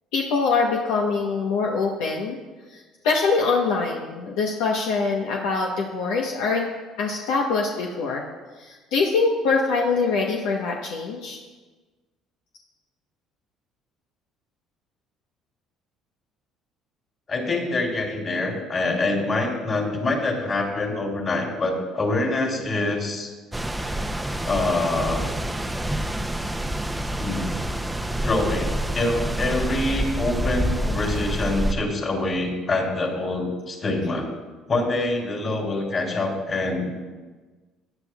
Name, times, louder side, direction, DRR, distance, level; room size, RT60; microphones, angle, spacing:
voice 1, 0.1-2.4 2.7-6.7 7.0-8.2 8.6-11.4, left 4 dB, 80° left, 0 dB, 1.0 m, -24 dB
voice 2, 17.3-23.3 24.4-25.2 27.2-27.4 28.2-34.3 34.7-36.9, left 2 dB, 40° left, 0 dB, 3.2 m, -25 dB
sound 1, 23.5-31.7, right 1 dB, 5° right, 0.7 m, -27 dB
16.0 x 10.0 x 2.4 m, 1.3 s
supercardioid pair, 80°, 0 cm